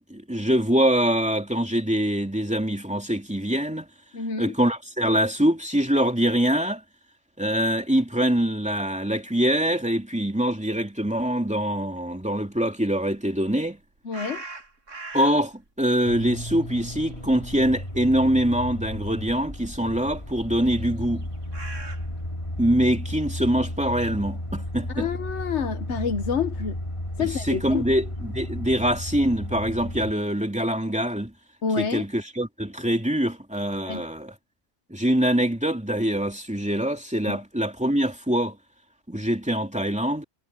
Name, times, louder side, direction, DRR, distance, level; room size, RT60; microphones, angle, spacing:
voice 1, 0.1-3.9 4.4-6.8 7.4-13.8 15.1-21.2 22.6-25.1 27.2-31.3 31.7-34.3 34.9-38.6 39.1-40.2, equal, 5° right, 2.9 m, -24 dB
voice 2, 4.1-4.5 14.0-14.4 24.9-26.8 27.2-27.8 31.6-32.0 33.8-34.0 37.3-37.4, left 6 dB, 65° left, 1.3 m, -28 dB
sound 1, 14.1-15.6 16.0-17.7 17.9-18.2 19.0-19.1 20.8-22.6, right 3 dB, 85° right, 3.1 m, -40 dB
sound 2, 16.0-30.1, left 1 dB, 25° left, 2.5 m, -34 dB
omnidirectional pair, 1.3 m